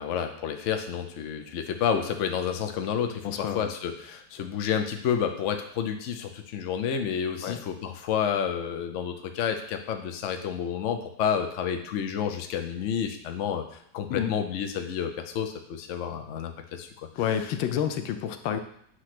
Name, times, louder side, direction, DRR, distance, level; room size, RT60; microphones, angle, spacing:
voice 1, 0.0-13.6 13.9-17.1, left 8 dB, 60° left, 6 dB, 0.8 m, -30 dB
voice 2, 3.2-3.7 7.4-7.6 14.1-14.3 17.2-18.6, left 9 dB, 90° left, 8 dB, 1.4 m, -29 dB
8.0 x 3.1 x 5.9 m, 0.67 s
omnidirectional pair, 2.0 m